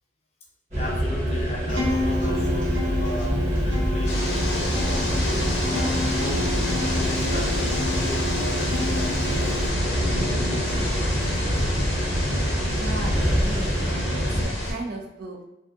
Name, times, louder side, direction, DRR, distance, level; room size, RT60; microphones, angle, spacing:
voice 1, 0.7-2.7 3.0-6.4 6.9-10.9 11.6-11.7, left 1 dB, 35° left, -1 dB, 0.5 m, -37 dB
sound 1, 0.7-14.4, equal, 35° right, 0.9 m, -26 dB
Acoustic guitar, 1.7-9.7, left 2 dB, 80° right, 1.0 m, -30 dB
sound 2, 4.1-14.7, left 1 dB, 75° left, 0.7 m, -30 dB
voice 2, 12.7-15.4, right 2 dB, 55° right, 1 dB, 0.4 m, -36 dB
2.5 x 2.4 x 2.3 m, 0.93 s
head